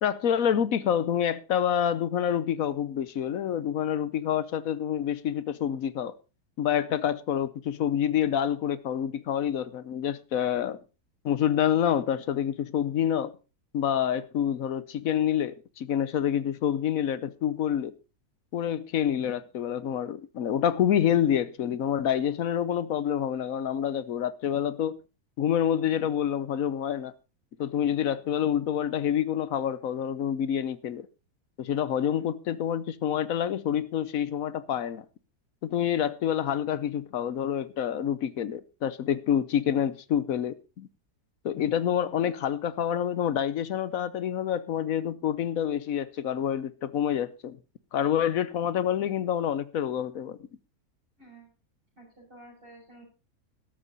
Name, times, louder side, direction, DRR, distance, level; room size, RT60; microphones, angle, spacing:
voice 1, 0.0-6.1 6.6-10.8 11.2-13.3 13.7-17.9 18.5-25.0 25.4-27.1 27.6-31.1 31.6-35.0 35.6-40.9 41.4-47.6 47.9-50.4, left 9 dB, 65° left, 1.2 m, -27 dB
voice 2, 51.2-51.5 52.0-53.0, right 2 dB, 35° right, 6.8 m, -51 dB
13.0 x 12.5 x 4.1 m
omnidirectional pair, 1.6 m